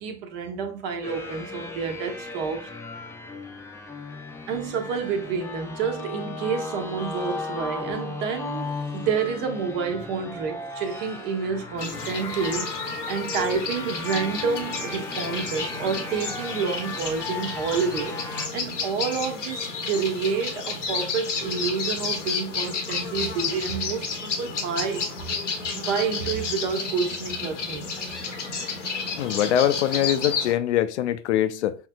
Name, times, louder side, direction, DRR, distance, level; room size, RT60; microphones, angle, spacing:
voice 1, 0.0-2.7 4.5-12.7 13.1-18.2 18.5-25.0 25.7-28.5, right 5 dB, 55° right, 1.1 m, -29 dB
sound 1, 1.0-18.5, left 3 dB, 10° left, 0.6 m, -36 dB
sound 2, 11.8-30.5, left 4 dB, 85° left, 1.0 m, -31 dB
voice 2, 29.2-31.8, left 11 dB, 70° left, 0.5 m, -23 dB
6.3 x 3.1 x 2.3 m
figure-of-eight pair, 80°, 35 cm